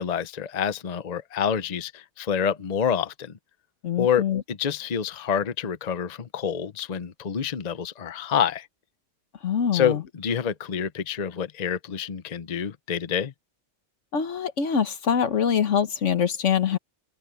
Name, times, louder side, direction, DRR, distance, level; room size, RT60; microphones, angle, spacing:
voice 1, 0.0-3.3 4.0-8.7 9.7-13.3, left 8 dB, 40° left, 0.8 m, -27 dB
voice 2, 3.8-4.4 9.4-10.0 14.1-16.8, left 7 dB, 70° left, 1.5 m, -24 dB
omnidirectional pair, 1.3 m